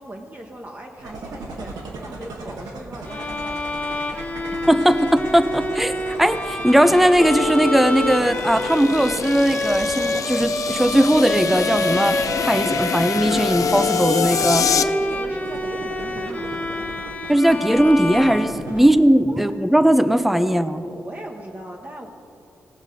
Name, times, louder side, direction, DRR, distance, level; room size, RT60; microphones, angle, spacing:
voice 1, 0.0-4.5 14.5-17.0 18.7-18.8 19.3-19.4 20.7-22.1, right 1 dB, 30° right, 0 dB, 1.0 m, -39 dB
sound 1, 1.0-18.9, right 2 dB, 85° right, 1.3 m, -37 dB
Bowed string instrument, 3.0-19.0, left 2 dB, 25° left, 0.9 m, -27 dB
voice 2, 4.7-14.6 17.3-20.8, equal, 5° right, 11 dB, 0.5 m, -18 dB
sound 2, 6.8-14.8, left 7 dB, 65° left, 0.5 m, -26 dB
18.0 x 6.1 x 5.2 m, 2.8 s
cardioid pair, 75°, 6 cm